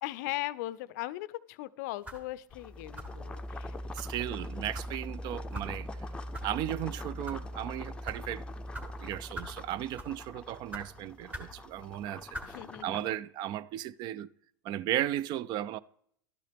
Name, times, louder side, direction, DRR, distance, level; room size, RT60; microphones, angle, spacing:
voice 1, 0.0-3.8 12.4-13.1, left 17 dB, 60° left, 0.5 m, -38 dB
sound 1, 2.0-2.3 3.0-3.2 4.0-4.1 4.7-4.9 5.5-5.7 6.3-6.5 7.1-7.4 8.0-8.2 8.7-8.9 9.3-9.6 9.9-10.2 10.7-10.9 11.3-11.5 12.3-12.5, right 1 dB, 15° right, 1.4 m, -41 dB
sound 2, 2.5-13.1, left 1 dB, 10° left, 0.6 m, -42 dB
voice 2, 3.9-6.1 6.4-8.5 8.8-12.6 12.8-14.3 14.6-15.8, right 12 dB, 40° right, 0.4 m, -35 dB
12.5 x 9.1 x 3.4 m
hypercardioid pair, 95°, 11 cm